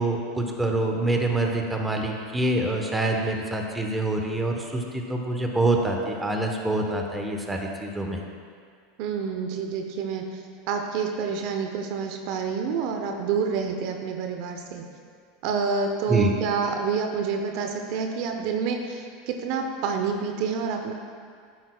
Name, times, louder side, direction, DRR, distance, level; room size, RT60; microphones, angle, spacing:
voice 1, 0.0-8.2 16.1-16.3, right 2 dB, 10° right, 1 dB, 1.2 m, -26 dB
voice 2, 9.0-10.2 10.7-14.8 15.4-20.9, right 5 dB, 60° right, 3 dB, 0.8 m, -28 dB
11.5 x 9.3 x 2.4 m, 2.1 s
hypercardioid pair, 100°, 0 cm